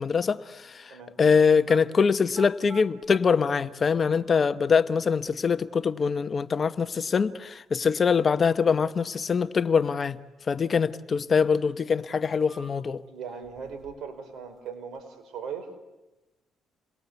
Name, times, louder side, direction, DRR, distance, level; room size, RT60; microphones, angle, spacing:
voice 1, 0.0-10.2 10.5-13.0, left 5 dB, 40° left, 1.0 m, -24 dB
sound 1, 1.7-1.8 2.3-3.2 4.2-4.3 5.0-6.0 10.0-11.0 11.4-11.5 12.1-13.0 13.4-14.1 14.4-15.0, right 3 dB, 30° right, 3.3 m, -50 dB
voice 2, 13.1-15.7, right 6 dB, 75° right, 5.2 m, -39 dB
28.0 x 22.0 x 8.3 m
cardioid pair, 90°, 0 cm